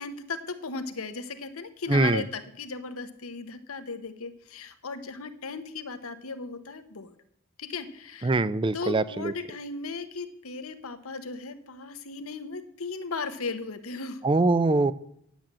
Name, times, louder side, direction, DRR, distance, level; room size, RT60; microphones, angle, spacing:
voice 1, 0.0-7.1 7.6-8.4 8.7-14.2, left 4 dB, 90° left, 9 dB, 1.1 m, -36 dB
voice 2, 1.9-2.2 8.2-9.3 14.2-14.9, right 3 dB, 25° right, 16 dB, 0.4 m, -23 dB
10.0 x 7.5 x 7.4 m, 0.74 s
head